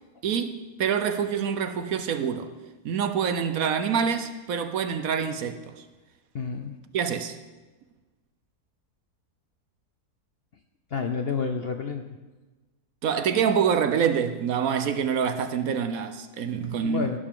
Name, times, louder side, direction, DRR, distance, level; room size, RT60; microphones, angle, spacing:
voice 1, 0.2-2.5 2.8-5.8 6.9-7.4 13.0-17.2, right 7 dB, 65° right, 1.1 m, -26 dB
voice 2, 6.3-6.8 10.9-12.2 16.8-17.2, left 5 dB, 55° left, 0.7 m, -29 dB
16.5 x 11.5 x 3.7 m
omnidirectional pair, 1.7 m